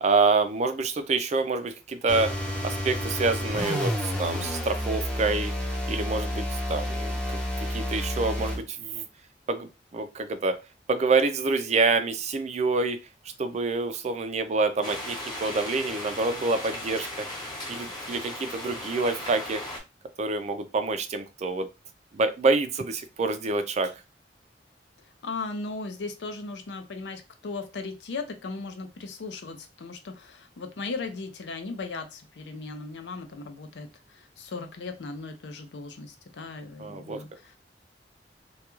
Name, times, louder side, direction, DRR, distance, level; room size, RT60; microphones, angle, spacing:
voice 1, 0.0-2.4 2.6-5.5 5.9-7.4 7.7-9.1 9.5-10.6 10.9-13.0 13.4-17.3 17.7-19.6 20.2-21.7 22.1-23.9 36.8-37.2, right 3 dB, 40° right, 9 dB, 0.4 m, -27 dB
sound 1, 2.1-8.6, equal, 5° left, 0.6 m, -30 dB
sound 2, 14.8-19.8, left 1 dB, 25° left, 0.9 m, -37 dB
voice 2, 25.2-37.6, left 3 dB, 75° left, 6 dB, 0.5 m, -37 dB
2.3 x 2.2 x 2.9 m, 0.27 s
head